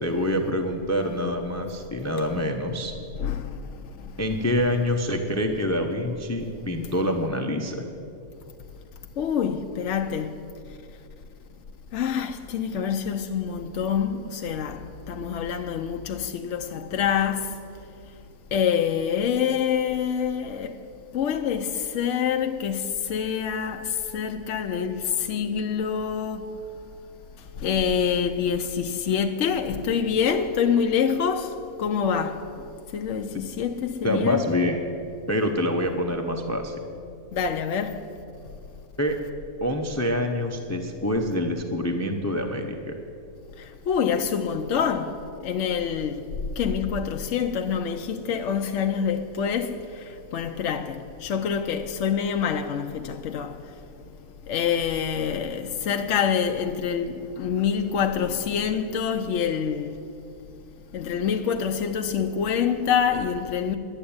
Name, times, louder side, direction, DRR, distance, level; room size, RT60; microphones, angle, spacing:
voice 1, 0.0-2.9 4.2-7.8 34.0-34.8 35.3-36.8 39.0-39.2 39.6-42.9, left 1 dB, 15° left, 0.5 m, -26 dB
voice 2, 3.2-3.6 9.2-10.4 11.9-17.6 18.5-20.8 21.1-26.5 27.6-32.4 32.9-34.4 37.3-38.1 43.6-45.1 45.4-46.2 46.6-53.6 54.5-60.0 60.9-63.7, left 7 dB, 65° left, 0.9 m, -26 dB
11.5 x 8.9 x 8.6 m
omnidirectional pair, 1.5 m